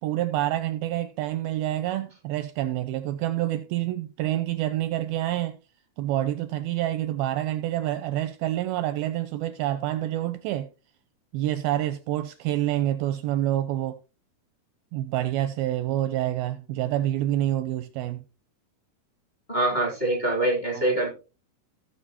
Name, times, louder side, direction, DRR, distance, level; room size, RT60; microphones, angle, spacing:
voice 1, 0.0-5.6 6.0-10.7 11.3-14.0 14.9-18.2 20.7-20.9, right 13 dB, 80° right, 2.3 m, -27 dB
voice 2, 19.5-21.1, right 2 dB, 10° left, 2.7 m, -24 dB
16.0 x 6.9 x 2.9 m
omnidirectional pair, 4.7 m